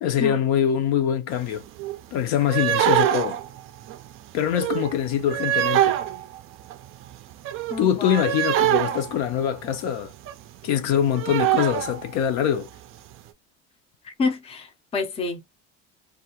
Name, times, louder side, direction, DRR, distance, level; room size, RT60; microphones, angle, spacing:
voice 1, 0.0-1.6 2.1-3.4 4.3-6.0 7.8-10.1 10.6-12.7, left 9 dB, 65° left, 0.6 m, -23 dB
sound 1, 1.4-1.5 1.6-2.0 2.4-9.8 10.1-10.3 10.7-10.8 10.9-12.2 12.6-12.7 13.1-13.2, right 13 dB, 50° right, 0.4 m, -24 dB
voice 2, 7.7-8.2 14.0-15.4, left 3 dB, 20° left, 0.5 m, -28 dB
2.6 x 2.4 x 2.8 m
cardioid pair, 165°, 29 cm